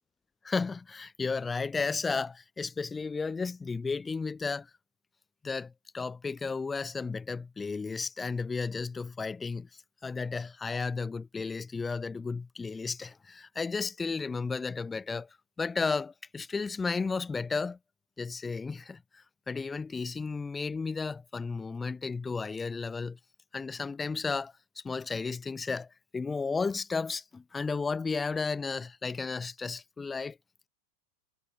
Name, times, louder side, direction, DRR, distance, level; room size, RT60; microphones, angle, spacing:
voice 1, 0.4-4.7 5.4-17.8 18.2-23.2 23.5-25.9 26.1-30.4, left 4 dB, 15° left, 0.5 m, -33 dB
figure-of-eight pair, 90°, 0 cm